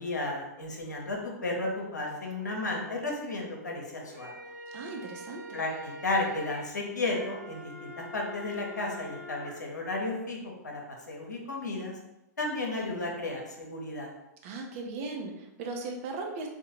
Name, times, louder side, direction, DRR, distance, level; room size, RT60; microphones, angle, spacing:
voice 1, 0.0-4.3 5.5-10.8 11.1-11.9 12.4-14.1, left 2 dB, 80° left, -1 dB, 0.8 m, -33 dB
sound 1, 3.9-9.5, equal, 80° right, 1.0 m, -45 dB
voice 2, 4.7-5.6 14.4-16.5, right 3 dB, 50° right, 1 dB, 0.7 m, -38 dB
3.6 x 2.3 x 3.0 m, 0.93 s
figure-of-eight pair, 100°, 9 cm